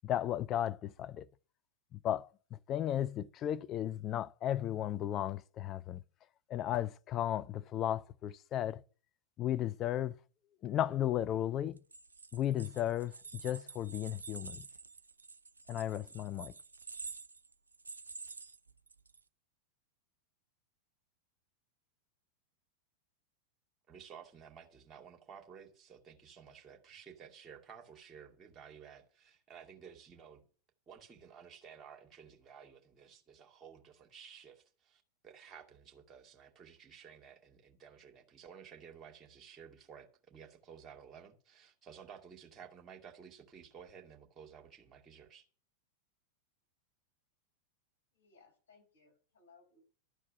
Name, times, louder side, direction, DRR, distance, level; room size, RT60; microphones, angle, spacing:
voice 1, 0.0-1.3 1.9-6.0 6.5-8.8 9.4-10.2 10.6-11.8 12.3-14.7 15.7-16.5, left 11 dB, 30° left, 0.5 m, -35 dB
sound 1, 11.8-19.2, right 4 dB, 80° right, 0.5 m, -49 dB
voice 2, 23.9-30.4 30.9-45.4, right 7 dB, 25° right, 2.3 m, -54 dB
voice 3, 48.1-49.8, left 4 dB, 65° left, 5.3 m, -64 dB
12.5 x 4.6 x 8.4 m
figure-of-eight pair, 90°, 0 cm